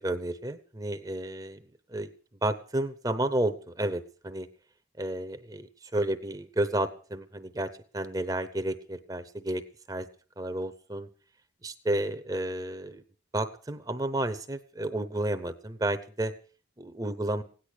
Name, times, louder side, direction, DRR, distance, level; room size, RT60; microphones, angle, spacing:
voice 1, 0.0-1.6 1.9-2.1 2.4-4.5 5.0-9.6 9.9-10.1 10.4-11.1 11.6-13.0 13.3-16.3 16.8-17.4, right 1 dB, 20° right, 11 dB, 0.8 m, -31 dB
17.0 x 10.5 x 6.4 m, 0.41 s
head